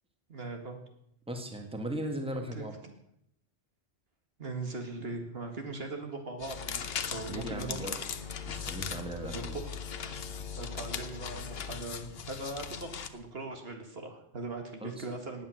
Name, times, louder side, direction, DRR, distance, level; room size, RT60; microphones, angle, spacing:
voice 1, 0.3-0.8 2.5-2.7 4.4-8.0 8.6-8.7 9.3-9.9 10.6-15.5, right 2 dB, 60° right, 4 dB, 2.1 m, -40 dB
voice 2, 1.3-2.8 7.3-8.0 8.4-9.6 14.8-15.0, right 1 dB, 5° right, 3 dB, 1.8 m, -37 dB
sound 1, 6.4-13.1, left 7 dB, 60° left, 1.1 m, -40 dB
sound 2, 6.5-11.8, left 6 dB, 45° left, 1.4 m, -44 dB
18.0 x 8.8 x 6.4 m, 0.74 s
omnidirectional pair, 1.2 m